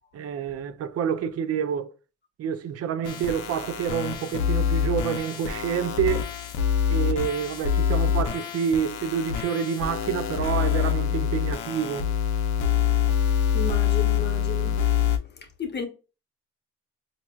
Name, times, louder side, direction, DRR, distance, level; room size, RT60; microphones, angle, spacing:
voice 1, 0.1-1.9 2.4-6.3 6.9-12.1, right 8 dB, 55° right, 0.5 m, -28 dB
sound 1, 3.0-15.2, left 8 dB, 85° left, 0.6 m, -25 dB
voice 2, 13.5-14.8 15.2-15.9, left 6 dB, 35° left, 1.0 m, -33 dB
4.3 x 2.6 x 2.3 m
cardioid pair, 90°, 30 cm